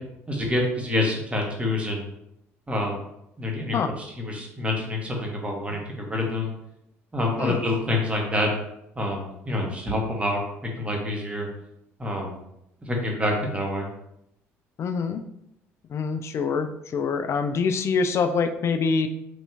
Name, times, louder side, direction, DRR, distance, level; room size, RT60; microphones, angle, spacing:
voice 1, 0.3-2.1 2.7-3.0 3.4-6.5 7.1-8.5 9.0-10.4 10.8-11.5 12.0-12.4 12.9-13.9, left 1 dB, 20° right, 0 dB, 1.1 m, -27 dB
voice 2, 14.8-15.2 15.9-19.1, left 5 dB, 45° left, 8 dB, 0.3 m, -25 dB
3.4 x 2.7 x 2.9 m, 0.80 s
hypercardioid pair, 60°, 7 cm